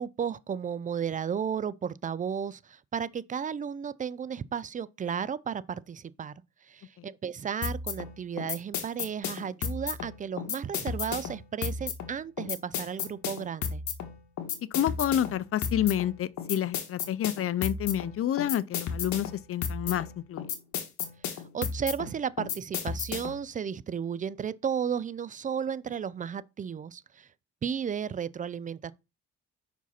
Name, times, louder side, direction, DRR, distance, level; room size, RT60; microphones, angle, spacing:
voice 1, 0.0-6.3 6.7-13.8 21.3-27.3 27.6-28.9, right 7 dB, 25° right, 0.4 m, -34 dB
sound 1, 7.6-23.5, left 7 dB, 70° left, 1.3 m, -34 dB
voice 2, 14.7-20.4, left 11 dB, 50° left, 0.5 m, -29 dB
5.4 x 4.9 x 4.2 m
cardioid pair, 90°, 30 cm